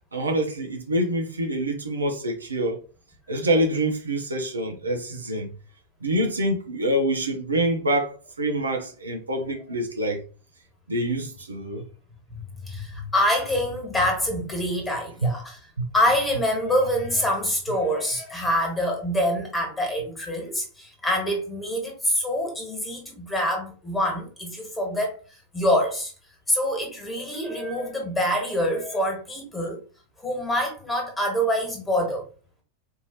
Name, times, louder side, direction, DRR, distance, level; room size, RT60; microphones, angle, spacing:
voice 1, 0.1-2.8 3.3-5.5 6.0-10.2 10.9-11.8 15.2-15.3 15.8-15.9, right 1 dB, 75° right, 0.8 m, -26 dB
voice 2, 12.3-15.6 15.9-25.2 25.5-26.1 26.5-29.8 30.2-32.2, equal, 10° left, 1.7 m, -25 dB
4.6 x 2.7 x 3.0 m
figure-of-eight pair, 90°, 0 cm